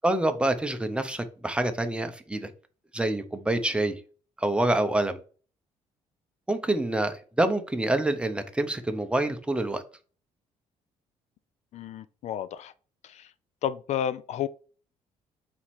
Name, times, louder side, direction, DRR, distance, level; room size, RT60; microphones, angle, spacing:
voice 1, 0.0-2.5 2.9-4.0 4.4-5.2 6.5-9.8, right 1 dB, 10° right, 0.7 m, -26 dB
voice 2, 11.7-12.7 13.0-13.3 13.6-14.5, left 10 dB, 60° left, 0.4 m, -31 dB
4.3 x 2.9 x 4.2 m
supercardioid pair, 70°, 13 cm